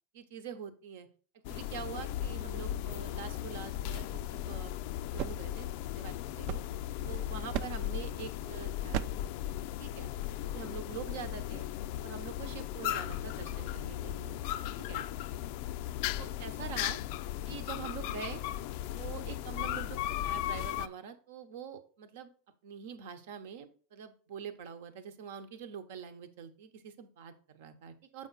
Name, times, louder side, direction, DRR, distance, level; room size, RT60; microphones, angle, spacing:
voice 1, 0.1-1.1 1.5-4.8 5.1-5.7 6.0-6.6 7.0-9.3 9.8-10.1 10.5-11.7 12.0-14.4 14.8-15.0 16.2-17.0 17.4-18.4 19.0-22.3 22.6-28.3, right 7 dB, 75° right, 9 dB, 1.0 m, -45 dB
sound 1, 1.4-20.9, left 13 dB, 60° left, 0.3 m, -37 dB
sound 2, 4.9-7.1 7.5-8.0 8.9-9.4, right 10 dB, 55° right, 0.5 m, -38 dB
7.5 x 4.9 x 4.1 m, 0.41 s
supercardioid pair, 140°, 0 cm